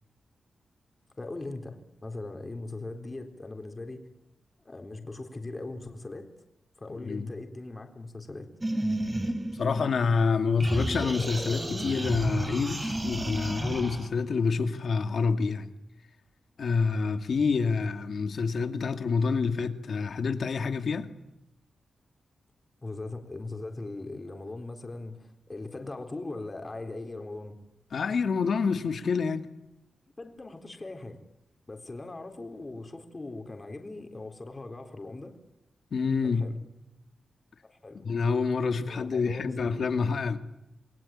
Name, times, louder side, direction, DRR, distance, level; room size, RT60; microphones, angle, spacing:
voice 1, 1.2-4.1 4.6-6.3 6.8-8.5 22.8-27.6 30.2-31.2 31.7-35.3 36.2-36.6 37.6-38.0 38.9-39.6, left 2 dB, 25° left, 3.9 m, -40 dB
voice 2, 6.9-7.3 9.5-15.7 16.6-21.1 27.9-29.5 35.9-36.5 38.0-40.4, left 5 dB, 65° left, 2.3 m, -27 dB
sound 1, 8.6-10.2 10.6-14.1, right 1 dB, 20° right, 4.4 m, -32 dB
29.0 x 21.5 x 9.0 m
wide cardioid pair, 120°, 0 cm